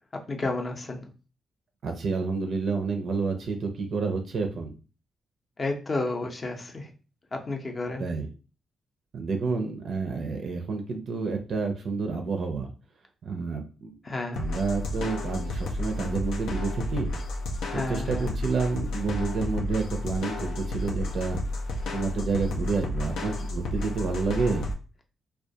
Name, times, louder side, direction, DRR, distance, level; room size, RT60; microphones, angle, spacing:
voice 1, 0.3-1.1 5.6-6.9 7.3-8.1 14.0-14.5 17.7-18.3, left 2 dB, 35° left, 3 dB, 0.5 m, -31 dB
voice 2, 1.8-4.7 8.0-8.3 9.1-12.7 13.2-13.9 14.4-17.1 17.7-21.4 21.9-24.6, right 4 dB, 60° right, 4 dB, 0.4 m, -29 dB
sound 1, 14.3-24.7, left 2 dB, 85° left, 0.4 m, -32 dB
2.2 x 2.2 x 2.7 m, 0.34 s
cardioid pair, 100°, 0 cm